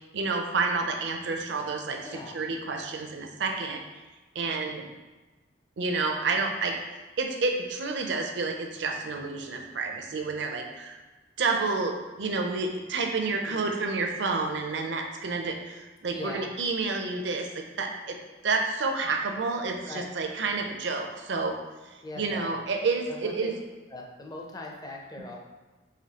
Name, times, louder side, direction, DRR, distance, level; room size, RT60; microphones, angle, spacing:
voice 1, 0.1-3.8 4.3-4.8 5.8-6.8 7.2-11.0 11.4-18.2 18.4-21.6 22.2-23.5, right 3 dB, 65° right, 3 dB, 0.5 m, -29 dB
voice 2, 2.0-2.4 4.7-4.9 13.2-13.7 16.1-16.5 19.8-20.1 22.0-22.5 23.1-23.5 23.9-25.4, left 2 dB, 20° left, 0 dB, 0.5 m, -41 dB
4.9 x 3.0 x 2.8 m, 1.2 s
head